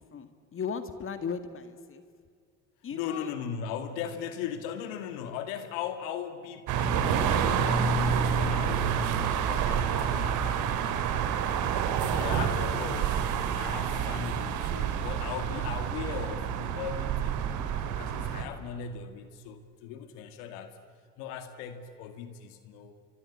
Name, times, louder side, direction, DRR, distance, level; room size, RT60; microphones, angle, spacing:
voice 1, 0.0-2.0 2.8-3.3, left 6 dB, 45° left, 10 dB, 2.1 m, -37 dB
voice 2, 2.9-11.6 12.0-13.2 13.5-17.4 18.0-20.8 21.2-22.9, left 8 dB, 85° left, 8 dB, 2.1 m, -38 dB
sound 1, 6.7-18.4, right 7 dB, 70° right, 2.7 m, -28 dB
25.5 x 24.0 x 8.5 m, 2.1 s
supercardioid pair, 85°, 31 cm